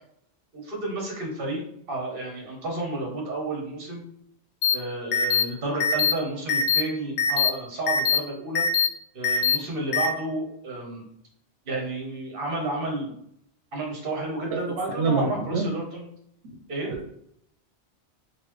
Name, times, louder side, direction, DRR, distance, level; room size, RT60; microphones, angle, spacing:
voice 1, 0.5-4.0 4.7-8.6 9.1-11.0 11.6-13.1 13.7-16.1 16.7-16.9, right 2 dB, 55° right, -1 dB, 1.2 m, -31 dB
sound 1, 4.6-4.7 5.1-5.4 5.8-6.1 6.5-6.8 7.2-7.5 7.9-8.2 8.5-8.9 9.2-9.6 9.9-10.1, left 7 dB, 75° left, 0.9 m, -22 dB
voice 2, 15.0-15.7, right 3 dB, 80° right, 0 dB, 0.9 m, -25 dB
4.0 x 2.6 x 3.0 m, 0.72 s
omnidirectional pair, 1.2 m